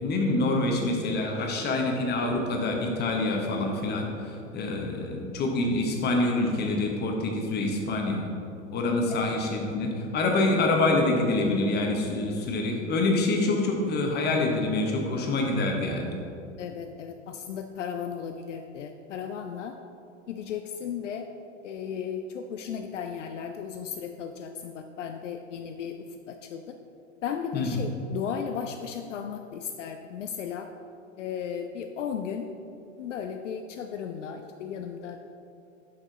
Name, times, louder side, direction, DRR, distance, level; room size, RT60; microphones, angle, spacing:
voice 1, 0.0-4.1 4.5-8.3 8.7-16.1 27.5-27.8, left 2 dB, 25° left, 1 dB, 1.0 m, -26 dB
voice 2, 16.6-19.8 20.3-21.3 21.6-26.0 26.3-26.8 27.2-30.7 31.2-32.5 33.0-35.3, left 7 dB, 70° left, 6 dB, 0.5 m, -35 dB
6.2 x 5.8 x 3.9 m, 2.6 s
figure-of-eight pair, 85°, 39 cm